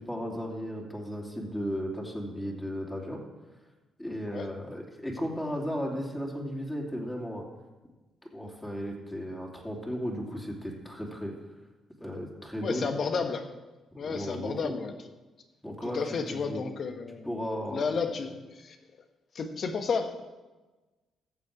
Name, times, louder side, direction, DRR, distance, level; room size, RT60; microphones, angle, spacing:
voice 1, 0.0-3.2 4.0-7.4 8.3-11.3 12.0-12.9 14.0-14.7 15.6-16.6 17.2-17.9, equal, 10° left, -1 dB, 2.8 m, -35 dB
voice 2, 12.6-13.4 14.0-14.9 15.8-17.3 17.7-18.8 19.3-20.2, left 5 dB, 55° left, 7 dB, 1.3 m, -32 dB
15.0 x 6.9 x 4.9 m, 1.2 s
supercardioid pair, 60°, 0 cm